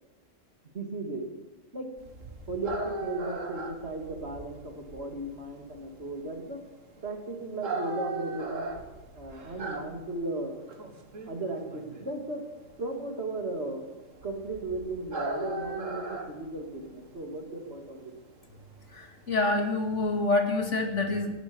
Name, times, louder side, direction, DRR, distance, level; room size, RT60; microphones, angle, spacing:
voice 1, 0.6-1.2 1.7-1.9 2.5-6.6 7.0-8.8 9.1-10.8 11.3-12.4 12.8-13.9 14.2-18.1, right 2 dB, 55° right, 3 dB, 2.7 m, -36 dB
sound 1, 2.0-20.4, right 2 dB, 85° right, 2.2 m, -39 dB
voice 2, 18.9-21.3, left 2 dB, 70° left, 3 dB, 2.6 m, -27 dB
18.5 x 10.5 x 7.0 m, 1.1 s
omnidirectional pair, 1.3 m